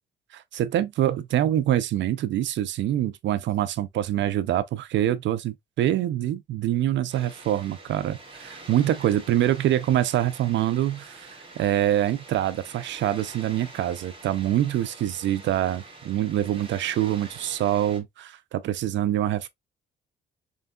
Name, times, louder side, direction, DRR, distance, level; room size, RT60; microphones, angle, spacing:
voice 1, 0.3-19.5, right 12 dB, 70° right, 0.4 m, -25 dB
Water, 7.1-18.0, right 2 dB, 30° right, 2.0 m, -46 dB
4.4 x 3.4 x 2.2 m
cardioid pair, 90°, 20 cm